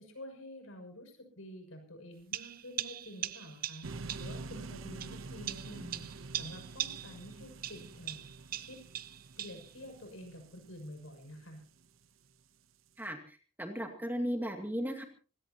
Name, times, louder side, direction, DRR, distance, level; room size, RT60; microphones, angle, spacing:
voice 1, 0.0-8.2 8.6-8.8 9.4-11.6, equal, 85° left, 5 dB, 6.7 m, -49 dB
sound 1, 2.3-4.4 5.0-7.3 7.6-9.7, right 11 dB, 45° right, 0.7 m, -40 dB
sound 2, 3.8-11.9, right 3 dB, 85° right, 1.0 m, -47 dB
voice 2, 13.0-15.0, equal, 10° right, 4 dB, 2.2 m, -36 dB
26.5 x 17.0 x 2.9 m, 0.38 s
head